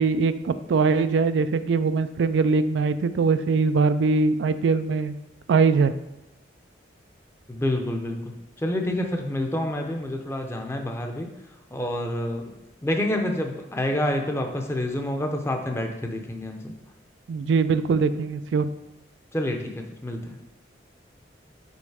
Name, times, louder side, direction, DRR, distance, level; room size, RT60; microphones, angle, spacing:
voice 1, 0.0-5.2 5.5-5.9 17.3-18.7, right 4 dB, 80° right, 12 dB, 0.3 m, -22 dB
voice 2, 7.5-11.3 11.7-12.5 12.8-16.8 19.3-20.4, left 1 dB, 15° left, 3 dB, 0.6 m, -28 dB
5.4 x 4.1 x 4.8 m, 1.0 s
head